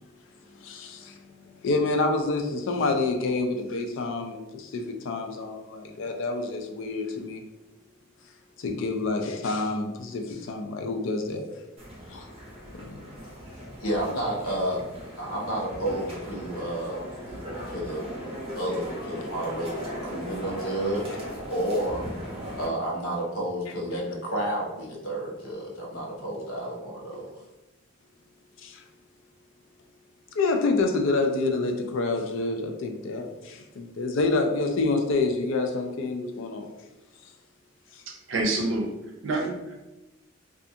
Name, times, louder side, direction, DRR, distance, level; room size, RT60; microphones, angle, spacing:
voice 1, 0.6-1.2 1.6-7.4 8.6-11.5 12.1-12.3 12.8-13.0 28.6-28.8 30.4-36.7, left 3 dB, 60° left, 4 dB, 0.4 m, -27 dB
sound 1, 11.8-22.7, equal, 30° right, 0.7 m, -38 dB
voice 2, 13.7-14.8 15.2-17.0 17.3-17.4 17.7-18.1 18.5-22.0 22.5-27.4, right 1 dB, 90° left, -3 dB, 0.8 m, -31 dB
voice 3, 38.1-38.9 39.2-39.8, right 2 dB, 60° right, 0 dB, 0.5 m, -27 dB
2.4 x 2.3 x 2.7 m, 1.0 s
head